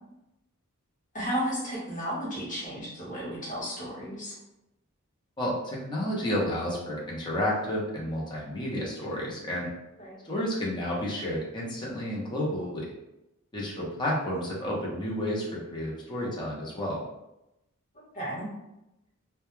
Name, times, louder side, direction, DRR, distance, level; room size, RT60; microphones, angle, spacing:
voice 1, 1.1-4.3 10.0-10.2 17.9-18.5, equal, 35° left, -7 dB, 1.1 m, -33 dB
voice 2, 5.4-9.7 10.2-12.9 13.5-17.0, equal, 20° left, -4 dB, 0.7 m, -31 dB
2.2 x 2.2 x 3.0 m, 0.91 s
head